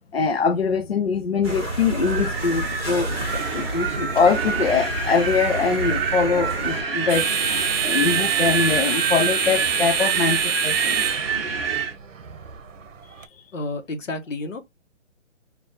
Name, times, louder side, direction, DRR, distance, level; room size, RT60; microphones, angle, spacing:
voice 1, 0.1-7.3 7.8-11.0 13.2-13.3, left 5 dB, 55° left, 0.5 m, -23 dB
sound 1, 1.4-6.8, right 1 dB, 20° left, 1.4 m, -30 dB
sound 2, 1.9-13.3, right 7 dB, 85° right, 0.8 m, -28 dB
Wind, 2.0-11.9, right 5 dB, 50° right, 0.9 m, -27 dB
voice 2, 13.5-14.6, left 2 dB, 85° left, 1.2 m, -30 dB
3.5 x 2.5 x 4.0 m
hypercardioid pair, 175°, 38 cm